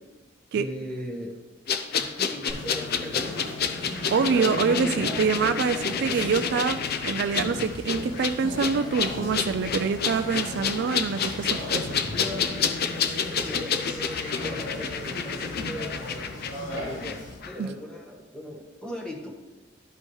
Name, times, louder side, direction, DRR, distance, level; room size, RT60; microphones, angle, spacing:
voice 1, 0.5-1.4 2.0-3.4 13.3-19.3, equal, 5° left, -1 dB, 1.3 m, -38 dB
sound 1, 1.7-17.2 17.4-17.5, left 6 dB, 55° left, 0.6 m, -29 dB
Conversation, 2.5-17.3, left 2 dB, 85° left, 2.7 m, -35 dB
voice 2, 3.8-11.9 17.6-17.7, right 5 dB, 60° right, 11 dB, 0.3 m, -26 dB
12.0 x 5.3 x 3.2 m, 1.1 s
head